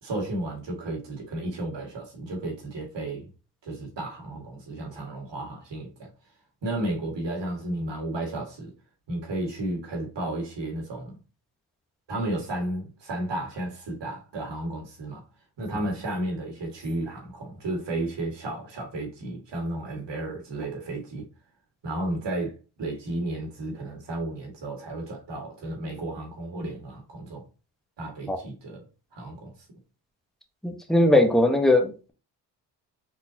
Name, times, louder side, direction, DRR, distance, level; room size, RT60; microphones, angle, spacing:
voice 1, 0.0-3.3 3.6-6.1 6.6-8.7 9.1-11.2 12.1-15.2 15.6-21.2 21.8-22.5 22.8-27.5 28.0-28.8 29.1-29.5, right 1 dB, 55° right, 2.0 m, -33 dB
voice 2, 30.6-32.1, left 1 dB, ahead, 1.1 m, -20 dB
4.3 x 3.9 x 2.8 m
supercardioid pair, 65°, 50 cm